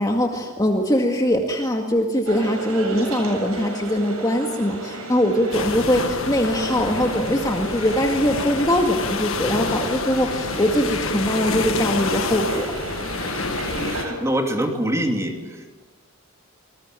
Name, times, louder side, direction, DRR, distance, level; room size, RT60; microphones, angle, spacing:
voice 1, 0.0-12.7, equal, 15° left, 2 dB, 2.0 m, -22 dB
sound 1, 2.3-14.1, right 1 dB, 75° right, 7.3 m, -33 dB
sound 2, 5.5-14.0, left 4 dB, 65° left, 1.7 m, -28 dB
voice 2, 13.8-15.8, equal, 15° right, 3 dB, 3.0 m, -25 dB
28.0 x 20.5 x 9.2 m, 1.3 s
head